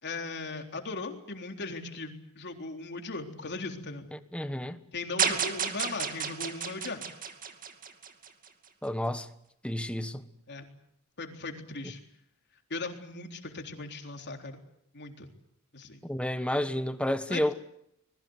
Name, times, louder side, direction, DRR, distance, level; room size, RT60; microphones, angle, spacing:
voice 1, 0.0-4.1 4.9-7.0 10.5-10.7 11.2-12.0 12.7-14.6 14.9-15.3 15.7-16.0 17.3-17.4, left 3 dB, 50° left, 3.7 m, -38 dB
voice 2, 4.1-4.8 8.8-9.3 9.6-10.3 16.0-17.6, left 1 dB, 5° left, 1.4 m, -31 dB
sound 1, 5.2-8.5, right 7 dB, 40° right, 2.5 m, -32 dB
25.5 x 21.5 x 8.0 m
head